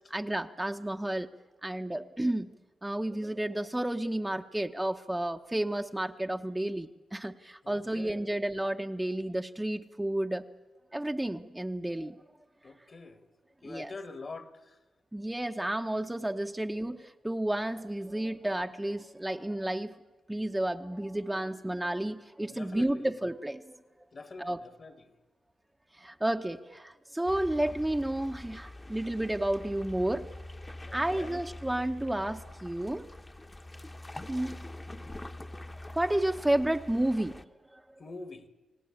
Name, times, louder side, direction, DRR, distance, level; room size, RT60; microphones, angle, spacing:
voice 1, 0.1-1.3 1.6-2.5 2.8-10.5 10.9-12.2 13.6-13.9 15.1-20.0 20.3-23.8 24.4-24.6 26.0-30.3 30.9-33.1 34.3-34.6 35.9-37.8, right 1 dB, 10° right, 0.9 m, -31 dB
voice 2, 7.6-8.3 12.6-13.3 13.6-14.8 22.5-23.1 24.1-25.1 30.9-31.4 38.0-38.5, left 3 dB, 45° left, 1.9 m, -45 dB
sound 1, 27.3-37.4, left 1 dB, 20° left, 1.1 m, -45 dB
29.5 x 18.5 x 8.7 m
cardioid pair, 80°, 0 cm